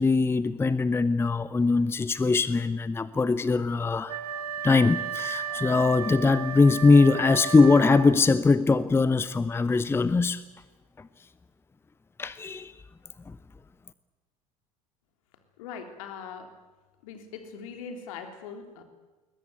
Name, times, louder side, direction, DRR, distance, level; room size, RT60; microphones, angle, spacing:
voice 1, 0.0-4.2 4.6-10.4 11.0-11.1 12.2-12.7 13.3-13.4, left 4 dB, 10° left, 16 dB, 0.8 m, -22 dB
Wind instrument woodwind instrument, 4.1-8.5, right 6 dB, 75° right, 1.7 m, -34 dB
voice 2, 15.6-16.5 17.0-18.8, left 6 dB, 60° left, 7 dB, 3.3 m, -41 dB
21.5 x 20.5 x 9.4 m, 1.2 s
figure-of-eight pair, 70°, 19 cm